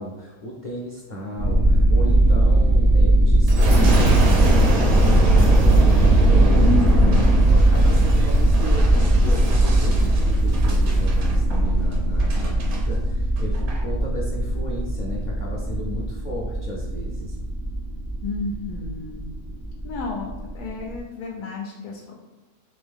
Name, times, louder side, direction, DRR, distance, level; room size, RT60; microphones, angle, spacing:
voice 1, 0.0-6.9 7.5-17.4, equal, 55° left, -4 dB, 0.5 m, -34 dB
sound 1, 1.4-21.0, right 1 dB, 45° right, 0.5 m, -19 dB
Boom, 3.5-12.8 13.4-13.8, right 2 dB, 70° right, 1.2 m, -22 dB
voice 2, 6.6-7.3 18.2-19.3 19.8-22.1, left 3 dB, 90° left, -1 dB, 1.2 m, -30 dB
3.5 x 3.5 x 3.5 m, 1.2 s
omnidirectional pair, 1.6 m